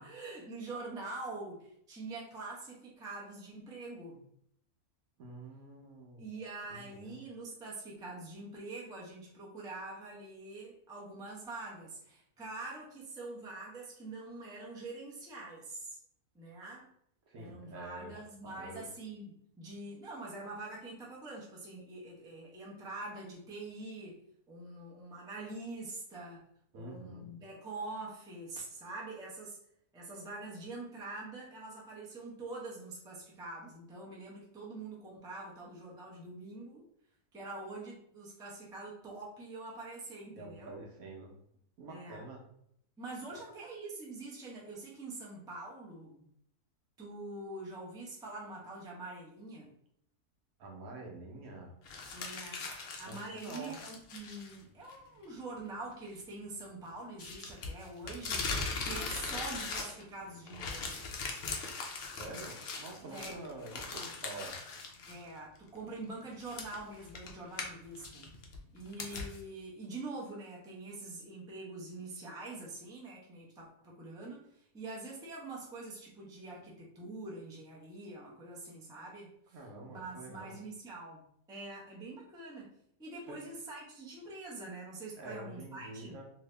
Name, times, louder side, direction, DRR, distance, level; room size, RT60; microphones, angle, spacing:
voice 1, 0.0-4.2 6.2-16.0 16.3-16.9 17.4-26.5 26.7-29.6 29.9-36.8 37.3-40.8 41.9-42.2 43.0-46.2 47.0-49.7 52.1-58.5 58.8-61.0 63.1-63.5 65.1-68.3 68.7-79.6 79.9-81.2 81.5-82.7 83.0-86.2, right 2 dB, 5° right, -5 dB, 0.4 m, -45 dB
voice 2, 5.2-6.3 6.7-7.2 17.3-18.1 18.4-18.9 26.7-27.3 40.3-41.3 41.8-42.4 43.3-43.4 50.6-51.7 53.0-53.8 62.1-64.6 79.5-80.5 83.3-83.4 85.2-86.2, right 2 dB, 70° right, 0 dB, 1.1 m, -47 dB
sound 1, 51.8-54.6 54.9-55.0 57.2-60.2 60.5-65.2 65.6-65.7 66.4-69.4, left 4 dB, 60° left, 0.7 m, -40 dB
2.9 x 2.7 x 3.2 m, 0.71 s
omnidirectional pair, 1.6 m